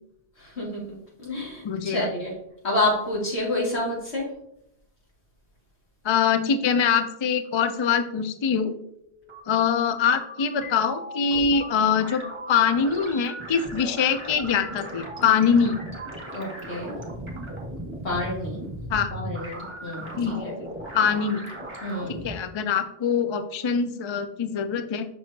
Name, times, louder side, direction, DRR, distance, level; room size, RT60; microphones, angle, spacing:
voice 1, 0.4-0.8 1.2-2.3 2.6-4.2 16.3-16.9 18.0-18.6 19.1-20.1 20.4-20.5 21.8-22.2, left 1 dB, 75° left, -5 dB, 2.4 m, -28 dB
voice 2, 1.6-2.1 6.0-8.7 9.5-12.2 12.5-15.7 18.9-19.1 20.2-20.7 20.9-21.4 22.2-25.0, left 6 dB, 50° left, 9 dB, 0.3 m, -23 dB
sound 1, 9.1-22.3, right 1 dB, 25° right, 1.4 m, -37 dB
6.1 x 6.0 x 2.8 m, 0.78 s
omnidirectional pair, 1.1 m